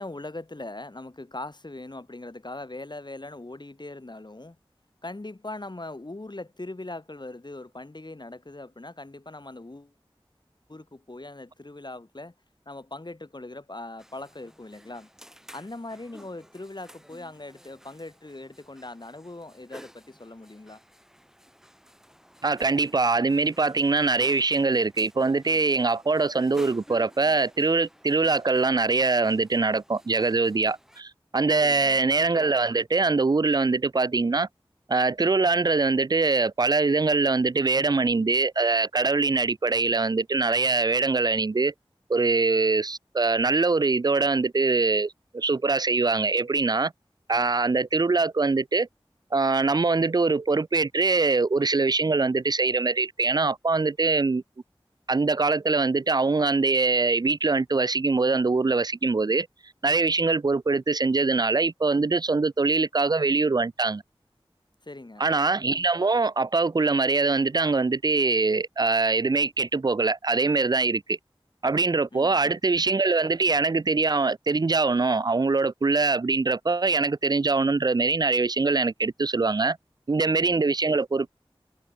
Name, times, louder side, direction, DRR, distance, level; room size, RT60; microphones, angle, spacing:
voice 1, 0.0-4.6 5.0-9.9 10.7-12.3 12.7-15.1 15.5-20.8 31.6-32.0 64.8-65.3 72.1-72.6 80.9-81.2, left 2 dB, 50° left, 3.8 m, -40 dB
sound 1, 14.0-31.0, equal, 5° right, 7.3 m, -52 dB
voice 2, 22.4-34.5 34.9-41.7 42.1-46.9 47.3-48.9 49.3-54.4 55.1-59.5 59.8-64.0 65.2-71.2 71.6-79.8 80.1-81.3, right 3 dB, 45° right, 0.4 m, -23 dB
wide cardioid pair, 45°, 10 cm